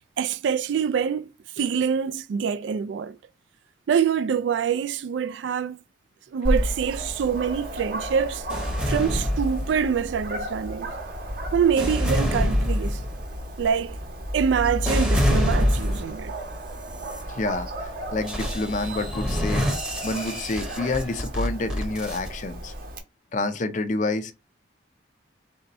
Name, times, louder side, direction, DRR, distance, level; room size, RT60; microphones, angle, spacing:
voice 1, 0.2-3.2 3.9-5.8 6.3-8.4 8.9-10.9 11.5-13.0 13.6-14.0 14.3-16.3, right 7 dB, 70° right, 0.3 m, -25 dB
Dog, 6.4-23.0, right 1 dB, 50° right, 0.9 m, -34 dB
sound 1, 8.5-10.1 10.7-16.2 16.8-17.2 18.3-22.3, equal, 5° right, 0.8 m, -26 dB
voice 2, 17.3-19.7 20.0-22.7 23.3-24.3, left 2 dB, 40° left, 0.5 m, -28 dB
3.4 x 2.7 x 4.1 m
head